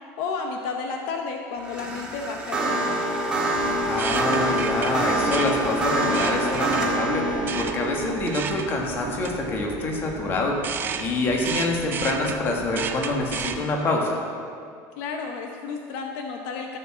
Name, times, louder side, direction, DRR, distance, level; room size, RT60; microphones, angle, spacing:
voice 1, 0.2-3.0 15.0-16.8, left 4 dB, 65° left, 3 dB, 0.9 m, -32 dB
sound 1, 1.6-10.9, right 1 dB, 10° right, 1.5 m, -27 dB
sound 2, 3.5-13.7, right 6 dB, 25° right, 0.5 m, -34 dB
voice 2, 3.8-10.6 11.0-14.2, left 2 dB, 30° left, 0 dB, 1.6 m, -26 dB
14.0 x 6.5 x 6.2 m, 2.4 s
cardioid pair, 170°, 8 cm